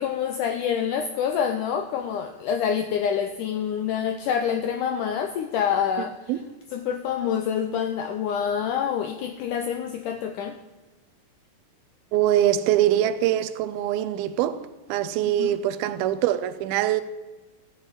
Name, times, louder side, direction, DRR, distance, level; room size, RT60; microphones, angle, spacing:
voice 1, 0.0-6.3 6.7-10.6 15.4-15.6, left 8 dB, 85° left, 1.8 m, -27 dB
voice 2, 12.1-14.6 14.9-17.0, right 12 dB, 80° right, 2.5 m, -23 dB
14.5 x 7.1 x 9.1 m
omnidirectional pair, 4.4 m